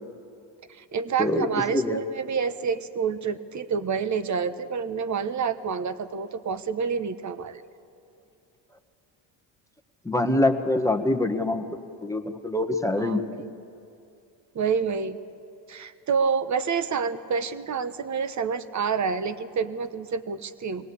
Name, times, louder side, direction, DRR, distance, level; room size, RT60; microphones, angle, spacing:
voice 1, 0.7-7.6 13.0-13.5 14.5-15.2 15.7-20.9, right 6 dB, 40° right, 12 dB, 1.1 m, -28 dB
voice 2, 10.0-11.7 12.0-13.3, left 1 dB, 5° left, 5 dB, 1.3 m, -24 dB
23.0 x 17.5 x 8.5 m, 2.7 s
cardioid pair, 90°, 46 cm